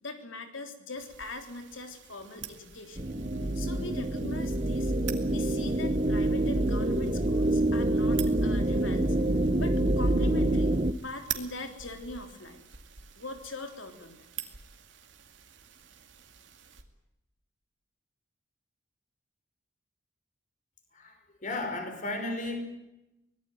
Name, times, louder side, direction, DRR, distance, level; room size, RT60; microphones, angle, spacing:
voice 1, 0.0-3.1 3.5-4.9 5.3-9.2 9.6-10.7 11.0-12.6 13.2-14.2, left 2 dB, 90° left, 5 dB, 3.5 m, -41 dB
sound 1, 1.0-16.8, right 10 dB, 70° right, 2.4 m, -46 dB
sound 2, 3.0-10.9, right 1 dB, 35° right, 1.1 m, -26 dB
voice 2, 20.9-22.6, left 2 dB, 40° left, 5 dB, 5.7 m, -34 dB
24.5 x 19.0 x 9.3 m, 0.93 s
head